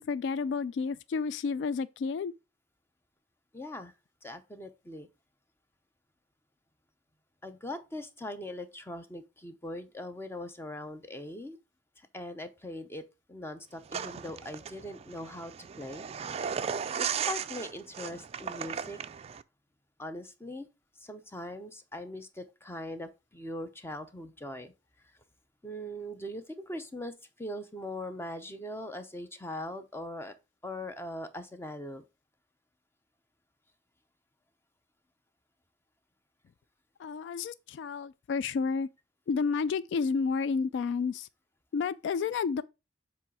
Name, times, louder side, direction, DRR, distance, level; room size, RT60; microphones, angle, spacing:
voice 1, 0.0-2.3 37.0-38.9 39.3-41.3 41.7-42.6, left 5 dB, 75° left, 0.3 m, -31 dB
voice 2, 3.5-3.9 4.2-5.1 7.4-11.6 12.0-13.0 13.3-16.1 16.4-16.6 17.0-19.0 20.0-20.7 21.0-24.7 25.6-30.3 30.6-32.0, left 1 dB, 15° left, 0.7 m, -41 dB
sound 1, 13.9-19.4, right 7 dB, 35° right, 0.3 m, -36 dB
7.3 x 3.1 x 4.7 m
head